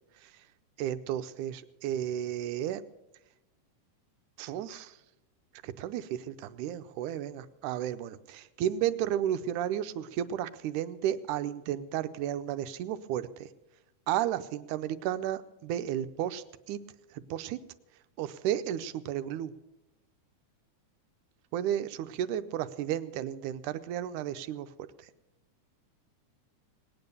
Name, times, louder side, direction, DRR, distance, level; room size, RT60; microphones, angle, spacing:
voice 1, 0.8-2.8 4.4-4.9 5.6-13.3 14.1-16.8 17.3-17.6 18.2-19.5 21.5-24.7, right 11 dB, 80° right, 12 dB, 2.1 m, -33 dB
19.5 x 9.0 x 6.7 m, 0.94 s
omnidirectional pair, 3.6 m